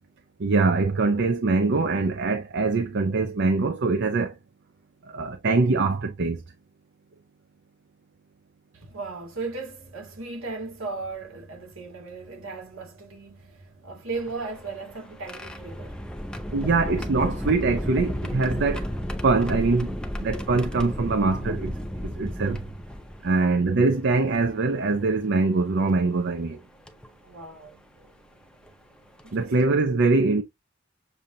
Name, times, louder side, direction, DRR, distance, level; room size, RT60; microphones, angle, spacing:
voice 1, 0.4-4.3 5.1-6.4 16.5-18.9 19.2-19.9 20.2-21.7 22.0-22.6 23.2-26.6 29.3-30.4, right 3 dB, 55° right, 0.5 m, -23 dB
voice 2, 8.7-16.5 27.2-27.8 29.2-29.7, right 3 dB, 80° right, 2.0 m, -37 dB
sound 1, 14.1-23.4 24.3-24.4 25.9-26.1 26.9-27.1 28.7-28.8 29.2-29.4, equal, 5° left, 0.6 m, -33 dB
6.9 x 2.6 x 2.7 m
head